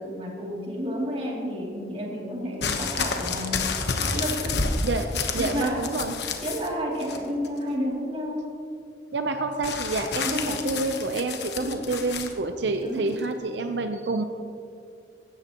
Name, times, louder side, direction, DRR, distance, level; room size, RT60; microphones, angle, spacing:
voice 1, 0.0-4.7 5.3-5.9 6.4-8.5 10.2-10.7 11.6-11.9 12.8-13.1, equal, 35° right, -3 dB, 2.7 m, -31 dB
sound 1, 2.6-6.7 7.0-7.6 9.6-12.3 13.2-13.3, left 4 dB, 70° left, 1.1 m, -30 dB
voice 2, 4.8-6.1 9.1-14.2, right 3 dB, 80° right, 6 dB, 0.7 m, -28 dB
15.5 x 13.0 x 3.0 m, 2.4 s
head